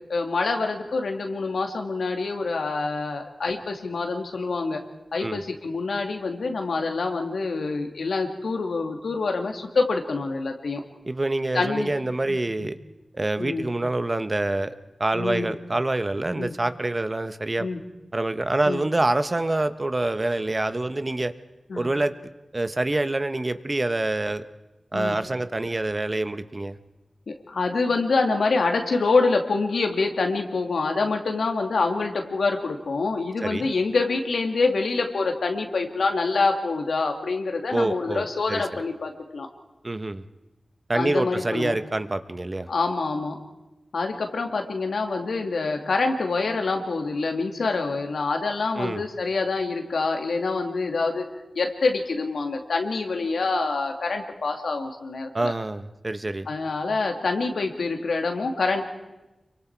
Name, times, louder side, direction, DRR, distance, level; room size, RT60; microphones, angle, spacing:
voice 1, 0.1-4.8 5.1-10.8 11.5-11.9 12.3-12.7 13.4-13.7 15.1-15.5 16.4-16.5 17.6-17.8 18.7-18.8 21.7-21.9 24.9-25.2 27.3-39.5 40.9-41.8 42.7-43.4 43.9-51.2 51.6-55.5 56.5-58.9, left 3 dB, 90° left, 3 dB, 2.2 m, -26 dB
voice 2, 11.0-12.7 13.1-14.7 15.0-17.7 18.1-21.3 21.7-22.1 22.5-24.4 24.9-26.8 33.4-33.7 37.7-38.6 39.8-40.2 40.9-42.7 48.7-49.0 55.3-56.5, right 2 dB, 35° right, 11 dB, 1.0 m, -26 dB
26.5 x 23.5 x 4.6 m, 1.0 s
cardioid pair, 50°, 0 cm